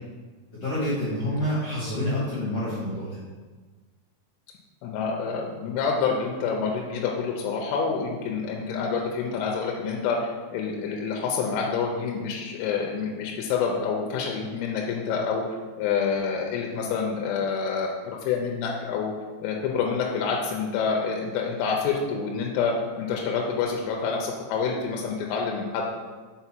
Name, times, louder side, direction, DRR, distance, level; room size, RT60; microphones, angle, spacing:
voice 1, 0.5-3.2, left 1 dB, 65° left, -10 dB, 1.5 m, -28 dB
voice 2, 4.8-10.2 10.5-17.9 18.2-19.1 19.4-25.9, left 5 dB, 85° left, 0 dB, 3.0 m, -27 dB
6.8 x 4.2 x 4.4 m, 1.4 s
omnidirectional pair, 5.6 m